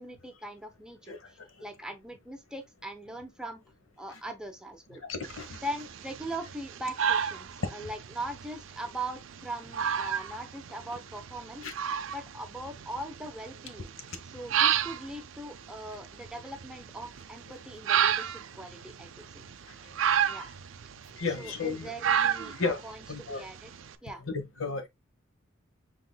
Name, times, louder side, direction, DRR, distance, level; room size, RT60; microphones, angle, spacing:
voice 1, 0.0-3.6 4.0-5.0 5.6-11.6 12.1-13.9 14.2-19.1 19.3-19.4 20.3-20.5 21.4-22.5 22.8-23.7 24.0-24.3, right 1 dB, 5° right, 0.7 m, -40 dB
voice 2, 5.1-5.6 11.6-11.7 20.4-20.5 21.2-21.9 22.6-22.8 23.1-23.5 24.2-24.9, left 4 dB, 70° left, 1.1 m, -33 dB
sound 1, 5.2-23.9, right 8 dB, 65° right, 0.5 m, -32 dB
5.9 x 3.7 x 2.2 m
head